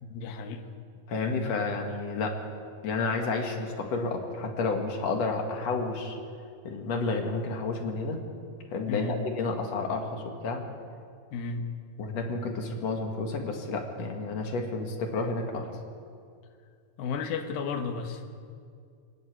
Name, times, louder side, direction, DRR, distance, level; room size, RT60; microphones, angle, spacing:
voice 1, 0.0-0.6 8.9-9.2 11.3-11.7 17.0-18.2, left 5 dB, 70° left, 5 dB, 2.9 m, -33 dB
voice 2, 1.1-2.4 2.8-6.2 6.6-8.2 8.7-10.6 12.0-15.7, left 3 dB, 50° left, 3 dB, 2.3 m, -30 dB
24.0 x 11.5 x 9.5 m, 2.3 s
omnidirectional pair, 4.7 m